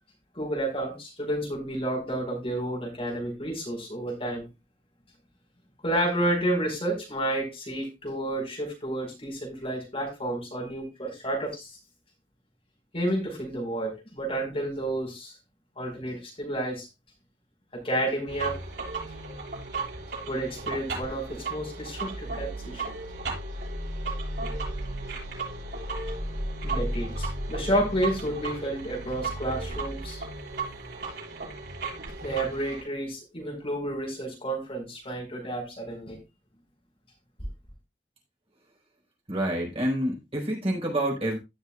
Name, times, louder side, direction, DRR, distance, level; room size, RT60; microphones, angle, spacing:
voice 1, 0.3-4.5 5.8-11.8 12.9-15.3 15.8-16.9 17.7-18.6 20.3-22.8 26.6-30.2 32.2-36.2, right 1 dB, 35° left, 4.6 m, -30 dB
sound 1, 18.3-32.8, right 2 dB, 70° right, 6.7 m, -34 dB
voice 2, 39.3-41.4, right 1 dB, 35° right, 4.3 m, -28 dB
17.0 x 6.5 x 2.3 m
head